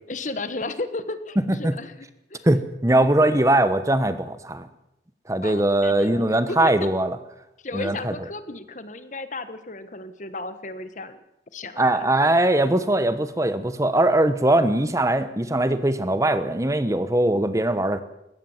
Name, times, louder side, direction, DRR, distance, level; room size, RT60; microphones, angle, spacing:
voice 1, 0.1-2.5 3.0-3.1 5.4-6.9 7.6-11.2 11.5-12.1, left 2 dB, 45° left, 11 dB, 1.3 m, -34 dB
voice 2, 2.4-4.7 5.3-7.2 7.7-8.1 11.8-18.0, right 1 dB, 15° right, 11 dB, 1.0 m, -21 dB
21.0 x 17.0 x 7.3 m, 0.84 s
head